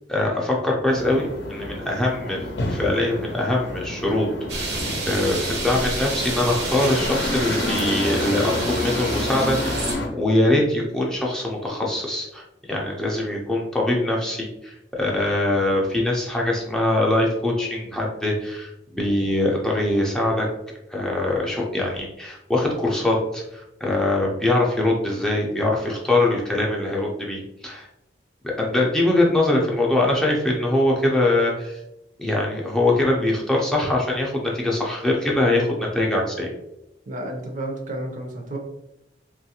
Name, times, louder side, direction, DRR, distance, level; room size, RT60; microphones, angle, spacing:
voice 1, 0.1-4.3 4.5-4.8 5.0-20.5 20.9-27.9 28.4-31.8 32.2-36.5, left 1 dB, 5° left, -3 dB, 0.4 m, -23 dB
sound 1, 0.9-10.1, left 2 dB, 70° left, 0.5 m, -29 dB
sound 2, 4.5-10.0, right 2 dB, 70° right, 0.8 m, -29 dB
voice 2, 37.1-38.6, right 1 dB, 45° right, 2 dB, 0.6 m, -31 dB
2.9 x 2.4 x 2.8 m, 0.85 s
head